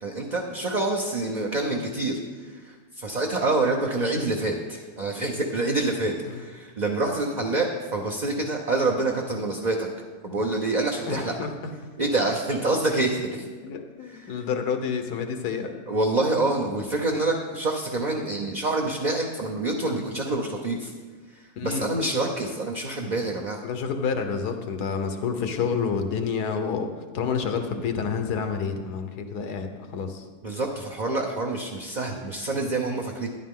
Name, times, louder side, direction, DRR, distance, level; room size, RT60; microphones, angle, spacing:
voice 1, 0.0-9.9 10.2-11.3 12.0-13.5 14.1-14.3 15.9-20.9 21.3-23.6 30.4-33.3, right 2 dB, 40° right, 0 dB, 0.7 m, -27 dB
voice 2, 11.1-11.5 13.6-15.7 21.6-21.9 23.6-30.2, left 6 dB, 80° left, 6 dB, 1.5 m, -29 dB
12.5 x 10.5 x 3.7 m, 1.4 s
omnidirectional pair, 1.6 m